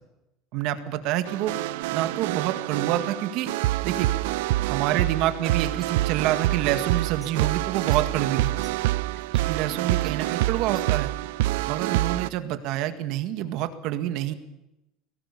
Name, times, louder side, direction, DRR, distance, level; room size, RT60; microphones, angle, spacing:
voice 1, 0.5-1.6 1.9-3.5 3.8-4.1 4.7-8.5 9.5-11.1 11.7-14.3, right 12 dB, 50° right, 9 dB, 1.8 m, -27 dB
sound 1, 1.3-12.3, right 17 dB, 85° right, 0.6 m, -26 dB
sound 2, 5.8-11.1, right 3 dB, 10° right, 2.4 m, -51 dB
22.0 x 18.0 x 7.0 m, 0.90 s
cardioid pair, 175°, 0 cm